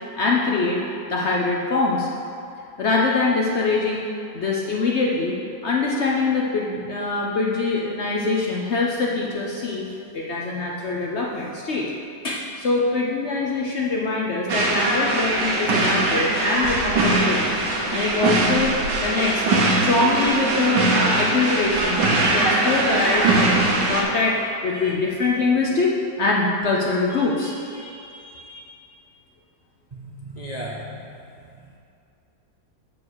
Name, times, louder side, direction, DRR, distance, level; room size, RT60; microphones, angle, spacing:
voice 1, 0.2-0.8 1.1-2.1 2.8-4.1 4.3-9.9 10.1-11.9 12.2-17.6 17.9-18.7 19.0-20.8 21.2-28.7, left 3 dB, 60° left, -2 dB, 0.7 m, -24 dB
sound 1, 14.5-24.0, right 2 dB, 70° right, 1.7 m, -21 dB
voice 2, 29.9-31.1 31.4-31.8, right 1 dB, 85° right, -5 dB, 0.3 m, -36 dB
8.9 x 4.6 x 6.3 m, 2.6 s
omnidirectional pair, 2.0 m